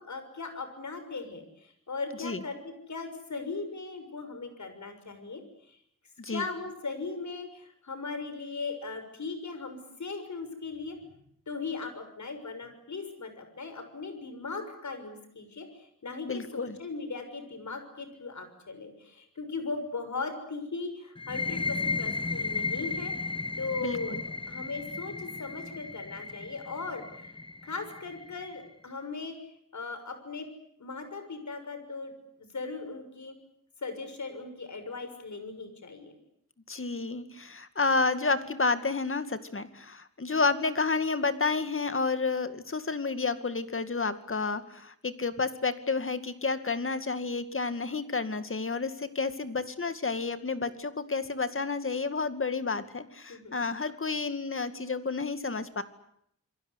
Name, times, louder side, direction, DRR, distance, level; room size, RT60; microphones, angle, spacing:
voice 1, 0.0-1.4 1.9-5.4 6.3-11.0 11.5-15.7 16.0-23.1 23.6-27.3 27.6-29.4 29.7-30.5 30.8-32.1 32.5-33.4 33.8-36.2 53.3-53.6, left 4 dB, 65° left, 9 dB, 6.5 m, -38 dB
voice 2, 16.2-16.8 23.8-24.2 36.7-55.8, left 4 dB, 40° left, 11 dB, 2.3 m, -30 dB
sound 1, 21.2-28.6, left 3 dB, 15° left, 1.4 m, -35 dB
28.5 x 22.5 x 8.2 m, 0.72 s
wide cardioid pair, 120°, 31 cm